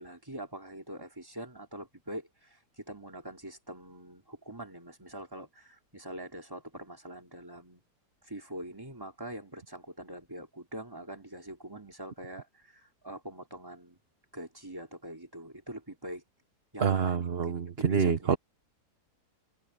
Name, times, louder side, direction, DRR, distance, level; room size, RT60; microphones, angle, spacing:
voice 1, 0.0-7.8 8.2-14.0 14.3-16.2 16.7-18.4, right 1 dB, 15° right, 3.6 m, -44 dB
voice 2, 16.8-18.4, right 6 dB, 45° right, 1.2 m, -27 dB
omnidirectional pair, 1.7 m